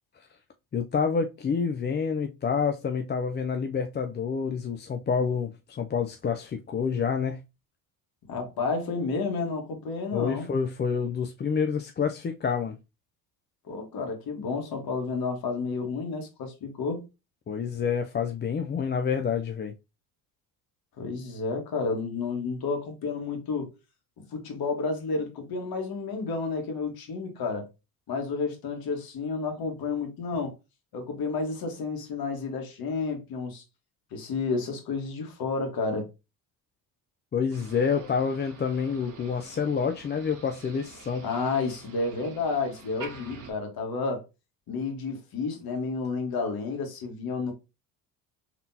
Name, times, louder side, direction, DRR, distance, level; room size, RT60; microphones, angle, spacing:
voice 1, 0.7-7.4 10.1-12.8 17.5-19.7 37.3-41.2, left 6 dB, 25° left, 0.5 m, -28 dB
voice 2, 8.3-10.5 13.7-17.0 21.0-23.8 24.3-27.7 28.1-30.6 30.9-33.6 34.1-36.1 41.2-44.2 44.7-47.5, left 4 dB, 55° left, 1.9 m, -31 dB
Motor vehicle (road), 37.5-43.5, right 3 dB, 45° right, 1.6 m, -47 dB
3.8 x 3.7 x 2.8 m
hypercardioid pair, 70°, 43 cm